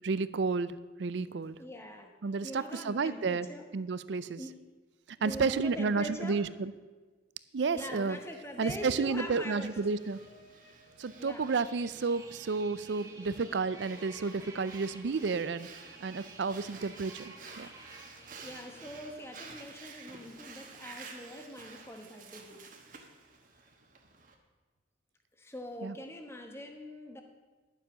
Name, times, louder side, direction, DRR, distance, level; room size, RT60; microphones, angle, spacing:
voice 1, 0.0-1.6 2.2-3.5 3.7-4.4 5.2-6.7 7.5-8.2 8.6-10.2 11.0-15.7 16.0-17.7 25.8-25.9, right 4 dB, 65° right, 16 dB, 0.5 m, -31 dB
voice 2, 1.6-2.1 2.4-3.6 4.4-4.5 5.2-6.4 7.7-9.7 11.2-11.5 18.4-22.7 25.4-27.2, left 1 dB, 15° left, 4 dB, 1.1 m, -43 dB
sound 1, 7.7-19.5, left 2 dB, 60° left, 1.3 m, -60 dB
Breathing, 9.3-24.3, right 4 dB, 45° right, 1.3 m, -52 dB
sound 2, 11.3-19.3, right 3 dB, 15° right, 1.2 m, -53 dB
11.0 x 7.4 x 6.1 m, 1.3 s
head